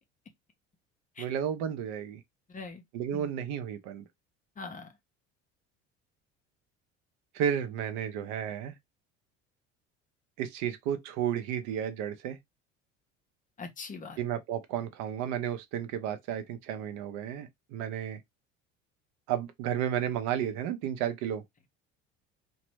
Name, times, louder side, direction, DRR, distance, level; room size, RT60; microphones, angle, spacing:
voice 1, 1.2-2.2 2.9-4.0 7.3-8.7 10.4-12.4 14.2-18.2 19.3-21.4, right 9 dB, 55° right, 0.6 m, -32 dB
voice 2, 2.5-2.8 3.1-3.3 4.6-5.0 13.6-14.2, left 4 dB, 20° left, 0.6 m, -42 dB
2.9 x 2.1 x 3.0 m
figure-of-eight pair, 65°, 37 cm